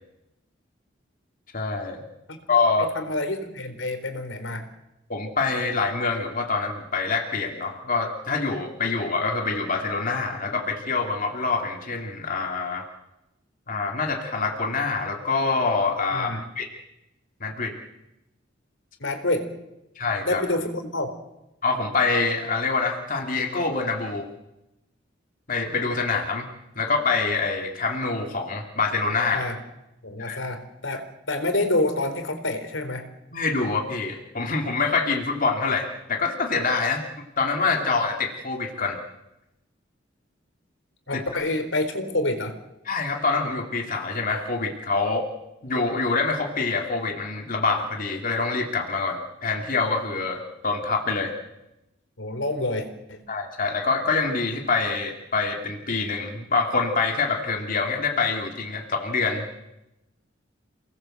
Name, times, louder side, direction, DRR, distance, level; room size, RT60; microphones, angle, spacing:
voice 1, 1.5-2.0 2.5-2.9 5.1-12.9 13.7-16.3 16.6-16.7 17.4-17.7 20.0-20.4 21.6-24.3 25.5-26.5 26.8-29.5 30.2-30.4 33.3-37.0 37.4-39.0 41.1-41.2 42.9-45.3 45.6-51.3 53.3-59.6, left 4 dB, 45° left, 2 dB, 2.7 m, -25 dB
voice 2, 2.8-4.7 16.1-16.4 19.0-19.5 20.2-21.2 29.3-29.6 30.0-33.1 41.1-42.6 52.2-53.2, left 2 dB, 80° left, 7 dB, 4.1 m, -27 dB
28.5 x 20.0 x 7.9 m, 0.92 s
head